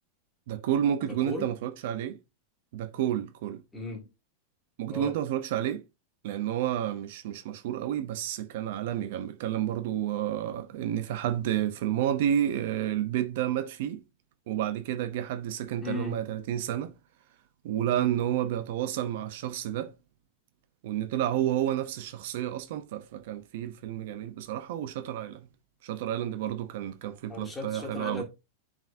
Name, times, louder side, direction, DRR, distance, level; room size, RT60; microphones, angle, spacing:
voice 1, 0.5-2.2 2.7-3.6 4.8-5.8 6.2-14.0 14.5-17.0 17.6-19.9 20.8-25.4 25.8-28.2, right 11 dB, 55° right, 0.7 m, -30 dB
voice 2, 3.7-4.1 4.9-5.1 15.8-16.2 27.3-28.2, left 2 dB, 10° left, 1.8 m, -36 dB
9.3 x 4.9 x 2.7 m
supercardioid pair, 165°, 0 cm